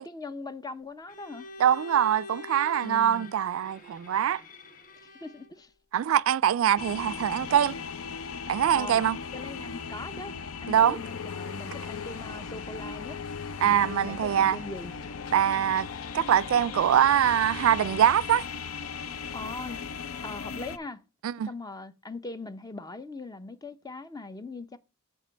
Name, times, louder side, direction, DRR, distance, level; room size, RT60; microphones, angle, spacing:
voice 1, 0.0-1.5 2.8-3.3 5.2-5.7 8.7-9.0 9.3-13.2 13.6-14.9 19.3-19.8 20.2-21.0 21.5-24.8, left 2 dB, 20° left, 0.5 m, -40 dB
Bowed string instrument, 1.1-5.6, left 3 dB, 40° left, 0.9 m, -45 dB
voice 2, 1.6-4.4 5.9-7.8 8.5-9.2 10.7-11.0 13.6-14.6 15.3-15.9 16.1-18.5 21.2-21.5, right 9 dB, 70° right, 0.3 m, -23 dB
sound 1, 6.8-20.8, left 5 dB, 75° left, 0.5 m, -37 dB
7.2 x 4.0 x 5.5 m
head